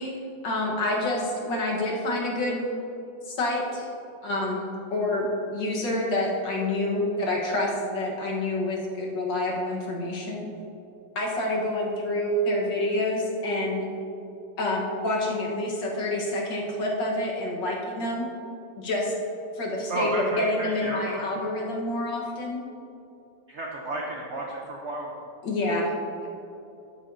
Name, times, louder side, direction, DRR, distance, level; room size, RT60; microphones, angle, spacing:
voice 1, 0.0-2.6 3.3-3.9 4.2-4.6 4.9-10.5 11.2-13.9 14.6-18.3 18.8-19.1 19.5-22.6 25.4-25.9, left 1 dB, 70° left, -2 dB, 2.0 m, -27 dB
voice 2, 19.9-21.4 23.5-25.1, right 2 dB, 50° right, -2 dB, 0.9 m, -32 dB
13.0 x 7.1 x 2.7 m, 2.8 s
omnidirectional pair, 2.0 m